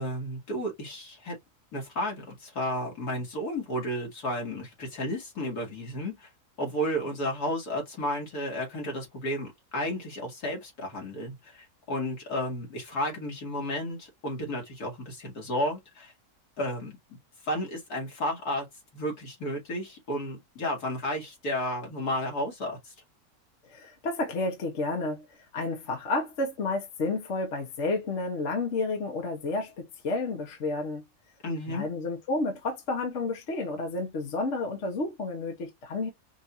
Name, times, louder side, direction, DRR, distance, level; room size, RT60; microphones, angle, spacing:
voice 1, 0.0-1.4 1.7-6.3 6.6-16.1 16.6-17.2 17.4-18.7 18.9-22.9 31.4-31.9, equal, 80° left, 2.5 m, -32 dB
voice 2, 23.7-25.2 25.5-31.0 31.7-36.1, left 3 dB, 50° left, 1.4 m, -31 dB
5.3 x 2.7 x 2.7 m
omnidirectional pair, 1.6 m